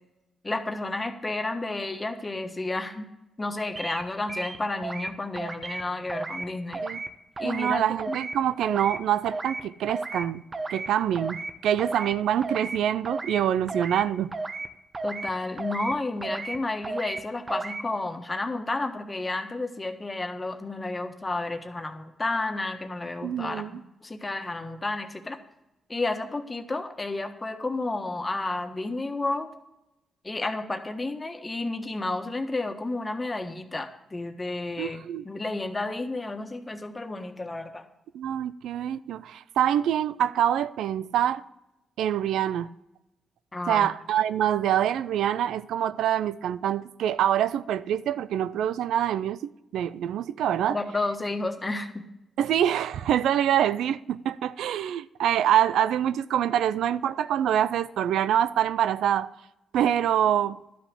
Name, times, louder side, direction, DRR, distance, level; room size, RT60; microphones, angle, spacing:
voice 1, 0.4-3.1 3.4-6.9 7.4-8.1 15.0-25.4 25.9-29.5 30.2-37.8 43.5-43.9 50.7-52.0, left 2 dB, 25° left, 1.4 m, -31 dB
sound 1, 3.8-4.0 4.3-5.1 5.4-5.8 6.1-6.5 6.7-7.1 7.4-7.7 8.0-8.3 8.6-9.0 9.3-9.6 9.9-10.2 10.5-10.9 11.1-11.5 11.8-12.1 12.4-12.8 13.0-13.4 13.7-14.0 14.3-14.7 14.9-15.3 15.6-15.9 16.2-16.6 16.8-17.2 17.5-17.8, right 3 dB, 35° right, 1.0 m, -33 dB
voice 2, 7.4-10.4 10.7-14.3 23.2-23.7 34.8-35.2 38.1-41.4 42.0-42.7 43.7-49.4 49.7-50.8 52.4-59.3 59.7-60.6, right 10 dB, 85° right, 0.3 m, -25 dB
12.0 x 5.9 x 8.2 m
cardioid pair, 70°, 0 cm